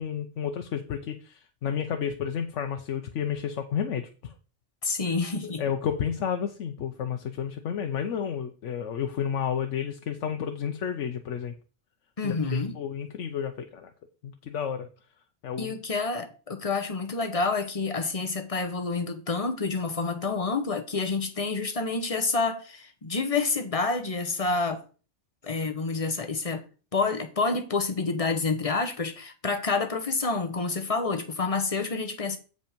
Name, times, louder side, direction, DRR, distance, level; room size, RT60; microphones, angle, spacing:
voice 1, 0.0-4.3 5.6-11.5 12.2-13.9 14.2-14.9 15.4-15.7, left 8 dB, 85° left, 1.0 m, -31 dB
voice 2, 4.8-5.6 12.2-12.8 15.6-24.8 25.4-26.6 26.9-32.4, left 4 dB, 30° left, 1.1 m, -28 dB
7.9 x 5.2 x 5.1 m
omnidirectional pair, 1.2 m